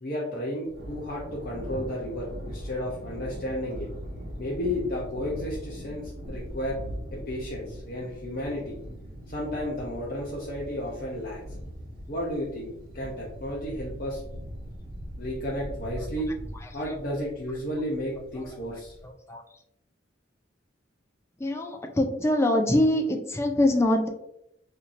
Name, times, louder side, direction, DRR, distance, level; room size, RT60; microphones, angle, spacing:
voice 1, 0.0-3.9 4.4-6.8 7.1-8.8 9.3-11.4 12.1-14.2 15.2-16.3 16.7-19.0, left 1 dB, 50° left, -5 dB, 0.7 m, -33 dB
Thunder, 0.7-19.1, equal, 50° right, 1.1 m, -41 dB
voice 2, 16.5-17.0 18.7-19.4 21.4-24.1, left 1 dB, 15° left, 3 dB, 0.4 m, -25 dB
4.3 x 2.8 x 2.5 m, 0.80 s
head